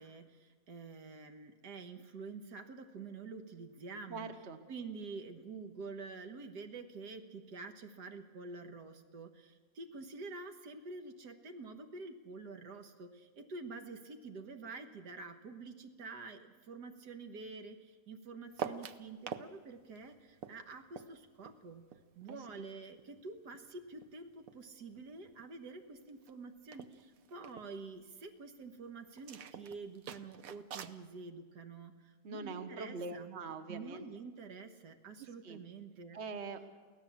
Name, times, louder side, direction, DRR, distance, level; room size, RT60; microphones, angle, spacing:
voice 1, 0.0-4.3 4.7-21.8 22.2-33.4 33.7-36.2, right 4 dB, 80° right, 6 dB, 1.9 m, -48 dB
voice 2, 4.1-4.6 22.3-22.7 32.2-34.0 35.4-35.6 36.1-36.7, right 4 dB, 45° right, 8 dB, 1.4 m, -43 dB
sound 1, 18.5-19.5 19.8-22.6 22.9-24.7 24.9-25.5 25.8-25.9 26.1-26.3 26.7-27.7 29.2-31.0, right 7 dB, 60° right, 1.2 m, -46 dB
24.0 x 16.5 x 7.3 m, 1.4 s
omnidirectional pair, 1.7 m